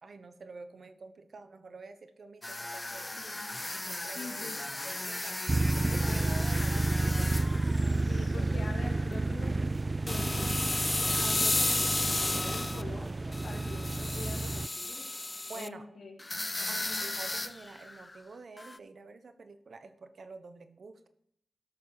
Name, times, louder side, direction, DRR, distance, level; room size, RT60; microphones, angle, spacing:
voice 1, 0.0-3.4 3.8-5.4 5.8-7.4 8.3-8.5 15.5-16.1 16.7-21.1, right 3 dB, 70° right, 10 dB, 1.0 m, -48 dB
sound 1, 2.4-8.5 8.9-9.2 10.1-12.8 13.3-15.7 16.2-18.2 18.6-18.8, left 2 dB, 25° left, 0.5 m, -34 dB
voice 2, 4.2-4.6 5.9-6.4 8.1-10.4 10.9-16.2 16.6-16.8, left 3 dB, 70° left, 0 dB, 2.0 m, -45 dB
sound 2, 5.5-14.7, right 2 dB, 35° right, 0.3 m, -31 dB
13.0 x 6.4 x 5.6 m, 0.74 s
cardioid pair, 55°, 0 cm